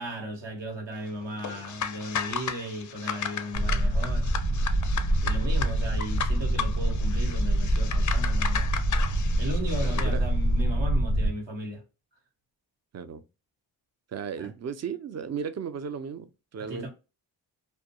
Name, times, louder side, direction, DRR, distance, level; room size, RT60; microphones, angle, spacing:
voice 1, 0.0-4.5 5.2-8.7 9.4-11.8 14.4-14.5 16.6-16.9, right 1 dB, 65° right, 1.2 m, -36 dB
sound 1, 1.4-10.1, left 7 dB, 40° left, 0.5 m, -35 dB
sound 2, 3.5-11.3, right 1 dB, 90° right, 0.9 m, -25 dB
voice 2, 9.8-10.2 12.9-13.2 14.1-16.3 16.5-16.9, right 6 dB, 35° right, 0.5 m, -35 dB
2.2 x 2.2 x 2.8 m
supercardioid pair, 40°, 48 cm